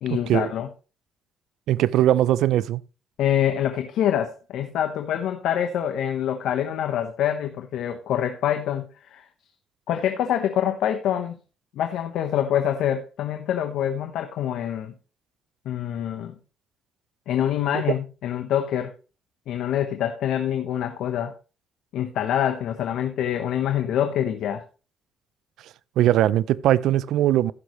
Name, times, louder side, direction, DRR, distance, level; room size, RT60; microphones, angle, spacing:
voice 1, 0.0-0.7 3.2-9.3 9.9-11.4 11.8-14.9 15.6-16.4 17.3-18.9 19.5-21.3 21.9-24.6, left 10 dB, 80° left, 1.0 m, -25 dB
voice 2, 1.7-2.8 26.0-27.5, right 12 dB, 85° right, 0.4 m, -20 dB
15.0 x 6.4 x 3.1 m
cardioid pair, 90°, 0 cm